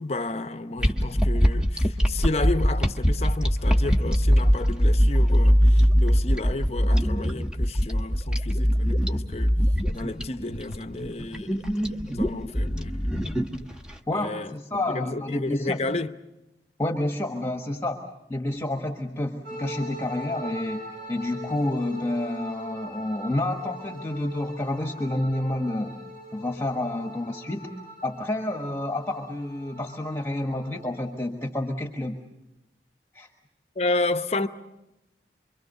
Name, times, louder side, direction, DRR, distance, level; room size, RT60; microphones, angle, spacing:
voice 1, 0.0-9.5 9.9-13.1 14.1-14.5 14.9-16.1 33.8-34.5, left 2 dB, 35° left, 0.8 m, -31 dB
sound 1, 0.8-13.9, equal, 5° right, 1.1 m, -22 dB
voice 2, 14.1-15.9 16.8-18.0 18.3-20.8 21.1-25.9 26.3-27.7 28.0-32.2 33.1-33.3, left 1 dB, 15° left, 1.4 m, -29 dB
sound 2, 19.4-31.1, right 1 dB, 55° right, 7.0 m, -41 dB
26.5 x 23.5 x 6.7 m
head